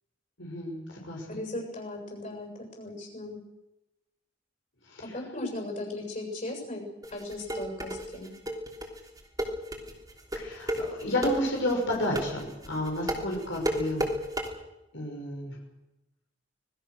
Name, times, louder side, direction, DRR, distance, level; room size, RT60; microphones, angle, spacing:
voice 1, 0.4-1.4 4.9-5.1 10.3-14.1 14.9-15.6, left 1 dB, 75° left, 0 dB, 6.0 m, -31 dB
voice 2, 1.3-3.4 5.0-6.8 7.1-8.3, left 2 dB, 40° left, 2 dB, 7.3 m, -37 dB
sound 1, 7.0-14.5, equal, 20° right, 3.2 m, -32 dB
26.0 x 20.0 x 6.5 m, 0.96 s
head